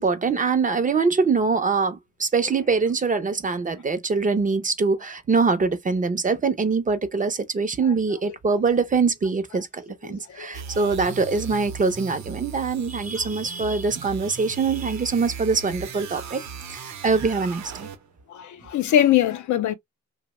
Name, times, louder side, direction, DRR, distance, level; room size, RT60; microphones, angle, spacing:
voice 1, 0.0-16.4 16.7-17.9, right 4 dB, 30° right, 0.5 m, -23 dB
voice 2, 10.0-10.5 18.3-19.7, left 11 dB, 85° left, 0.6 m, -22 dB
sound 1, 10.5-18.2, right 6 dB, 70° right, 0.7 m, -38 dB
2.9 x 2.0 x 2.9 m
cardioid pair, 120°, 29 cm